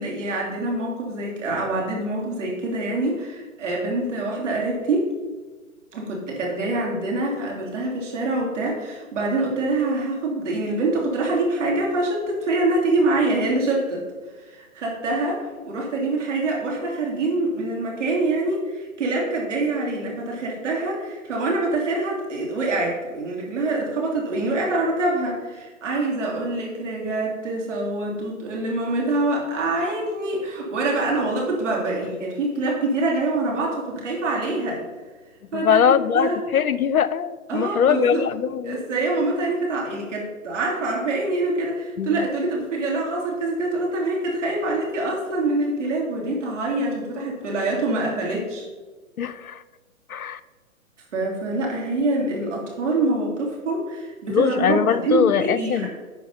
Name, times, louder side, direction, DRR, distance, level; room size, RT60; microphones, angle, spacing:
voice 1, 0.0-5.1 5.9-14.0 14.5-34.8 35.5-36.4 37.5-38.2 38.6-48.6 51.1-55.9, right 2 dB, 60° right, -2 dB, 3.2 m, -25 dB
voice 2, 35.5-38.8 42.0-42.3 49.2-49.6 50.1-50.4 54.3-55.9, left 8 dB, 80° left, 14 dB, 0.6 m, -21 dB
11.0 x 4.4 x 5.4 m, 1.3 s
figure-of-eight pair, 125°, 42 cm